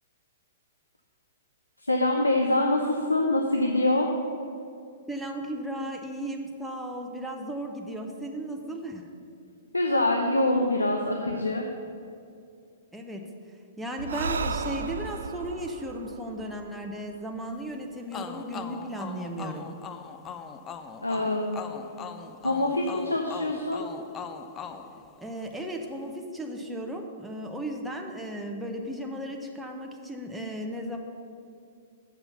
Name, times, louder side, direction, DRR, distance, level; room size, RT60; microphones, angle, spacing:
voice 1, 1.8-4.1 9.7-11.7 21.0-21.7 22.4-23.9, left 2 dB, 90° left, 2 dB, 0.7 m, -25 dB
voice 2, 5.1-9.0 12.9-13.2 13.8-19.7 25.2-31.0, right 1 dB, 5° right, 1 dB, 0.8 m, -35 dB
Breathing, 14.0-17.5, right 4 dB, 70° right, 0.4 m, -34 dB
sound 1, 18.1-25.7, left 6 dB, 25° left, 0.5 m, -41 dB
7.3 x 5.4 x 6.9 m, 2.5 s
figure-of-eight pair, 110°, 0 cm